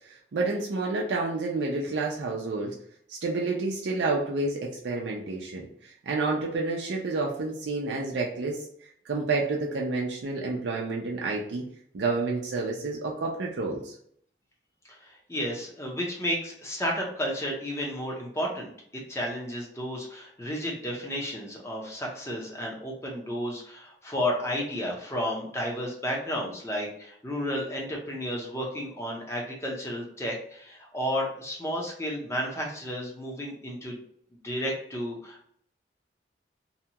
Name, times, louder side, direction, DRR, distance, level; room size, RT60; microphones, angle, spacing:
voice 1, 0.3-2.7 3.1-5.7 6.1-8.7 9.1-11.6 11.9-13.9, right 3 dB, 85° right, -2 dB, 0.5 m, -29 dB
voice 2, 15.0-18.7 19.1-34.0 34.4-35.5, equal, 15° left, -2 dB, 0.6 m, -32 dB
2.7 x 2.3 x 2.8 m, 0.64 s
head